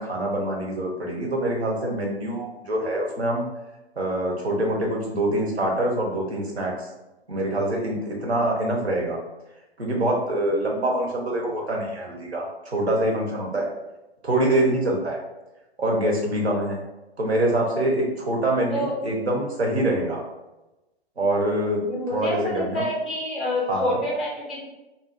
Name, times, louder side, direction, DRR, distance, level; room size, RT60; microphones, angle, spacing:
voice 1, 0.0-3.4 4.0-6.9 7.3-9.2 9.8-13.7 14.2-15.2 15.8-16.8 17.2-20.2 21.2-21.8 22.1-22.8 23.7-24.0, right 1 dB, 85° right, 0 dB, 0.8 m, -25 dB
voice 2, 21.8-24.6, equal, ahead, -5 dB, 0.4 m, -27 dB
2.7 x 2.1 x 2.4 m, 1.0 s
figure-of-eight pair, 115°, 31 cm